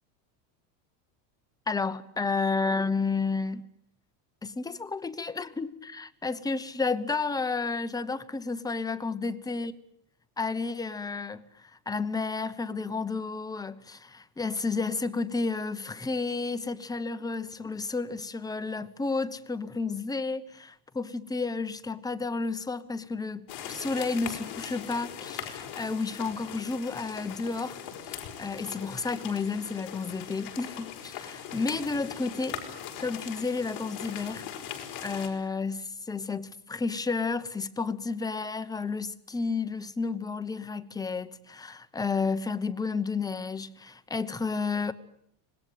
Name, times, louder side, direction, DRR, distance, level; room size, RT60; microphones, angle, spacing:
voice 1, 1.7-3.7 4.4-9.7 10.4-32.6 33.0-34.4 35.0-44.9, left 4 dB, 10° left, 0.9 m, -31 dB
sound 1, 23.5-35.3, left 9 dB, 50° left, 5.0 m, -40 dB
25.5 x 19.5 x 9.2 m
supercardioid pair, 140°, 49 cm